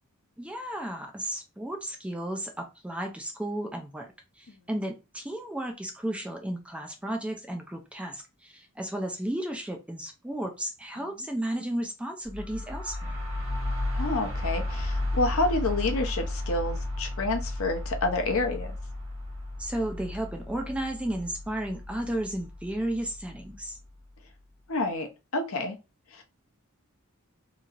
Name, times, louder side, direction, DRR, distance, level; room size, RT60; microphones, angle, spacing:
voice 1, 0.4-4.1 4.4-13.2 19.6-23.8, right 1 dB, 5° right, 3 dB, 0.4 m, -33 dB
sound 1, 12.2-23.9, left 1 dB, 60° right, 1.2 m, -34 dB
voice 2, 13.9-18.7 24.7-25.1 25.3-25.8 26.1-26.2, left 2 dB, 65° left, 5 dB, 0.7 m, -28 dB
3.0 x 2.7 x 2.4 m, 0.27 s
head